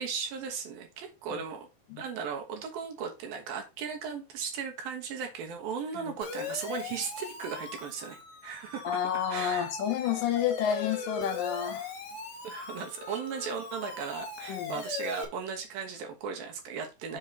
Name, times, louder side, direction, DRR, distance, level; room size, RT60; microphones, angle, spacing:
voice 1, 0.0-1.7 2.0-8.9 9.3-9.7 12.4-17.2, right 6 dB, 80° right, 3.2 m, -37 dB
Siren, 6.2-15.3, left 5 dB, 50° left, 2.0 m, -40 dB
voice 2, 8.8-11.9 14.5-14.8, left 9 dB, 75° left, 2.5 m, -30 dB
7.2 x 3.3 x 5.7 m
omnidirectional pair, 4.2 m